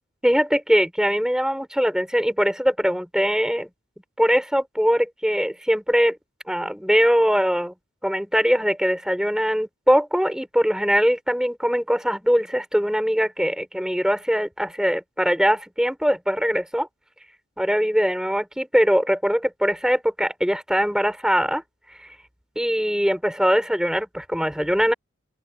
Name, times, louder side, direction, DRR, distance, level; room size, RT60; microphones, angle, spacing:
voice 1, 0.2-3.7 4.2-6.2 6.5-7.7 8.0-16.9 17.6-21.6 22.5-24.9, equal, 5° right, 6.7 m, -21 dB
open air
head